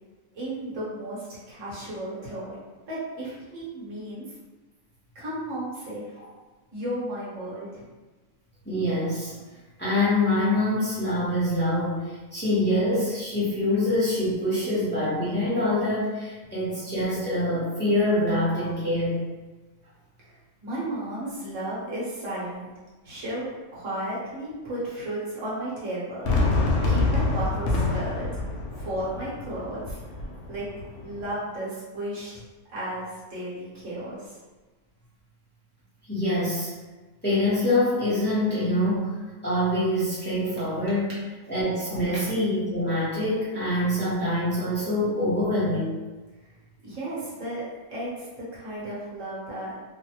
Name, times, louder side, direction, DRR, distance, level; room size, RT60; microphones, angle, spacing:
voice 1, 0.3-4.2 5.1-6.0 6.7-7.9 20.3-20.4 20.6-22.7 23.0-26.3 26.8-28.3 28.8-30.0 30.5-30.7 31.0-32.3 32.7-34.4 46.8-47.6 47.9-48.3 48.5-49.7, right 1 dB, 60° right, -8 dB, 1.4 m, -34 dB
voice 2, 8.6-9.3 9.8-19.2 36.1-36.7 37.2-39.2 39.4-41.1 41.5-46.0, left 1 dB, 10° left, -10 dB, 0.7 m, -25 dB
Fireworks, 26.2-31.3, left 3 dB, 65° left, 0.7 m, -26 dB
3.1 x 2.1 x 2.9 m, 1.2 s
omnidirectional pair, 1.6 m